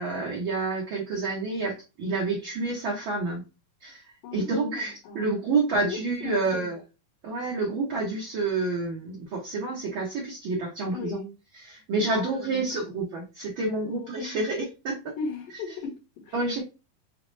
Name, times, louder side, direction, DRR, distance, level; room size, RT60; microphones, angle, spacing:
voice 1, 0.0-3.4 3.8-6.8 7.2-11.2 11.7-15.2 16.3-16.6, right 3 dB, 85° right, 1.1 m, -29 dB
voice 2, 4.2-5.3 5.9-6.7 10.9-11.3 12.0-12.9 13.8-14.4 15.2-16.3, left 4 dB, 75° left, 2.7 m, -38 dB
5.6 x 2.0 x 3.2 m
omnidirectional pair, 3.8 m